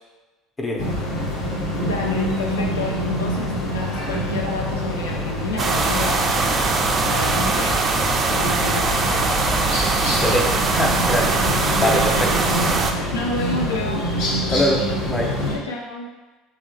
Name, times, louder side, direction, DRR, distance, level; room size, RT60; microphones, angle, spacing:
sound 1, 0.8-15.5, equal, 70° left, 0.9 m, -26 dB
voice 1, 1.8-7.8 8.3-9.4 11.7-12.3 13.1-14.0 15.5-16.1, left 2 dB, 85° left, -1 dB, 0.3 m, -29 dB
sound 2, 5.6-12.9, right 3 dB, 35° right, 0.3 m, -21 dB
voice 2, 10.0-11.4 11.8-12.3 14.5-14.8 15.1-15.3, equal, 20° left, 0 dB, 0.6 m, -23 dB
2.8 x 2.8 x 2.7 m, 1.2 s
hypercardioid pair, 70°, 0 cm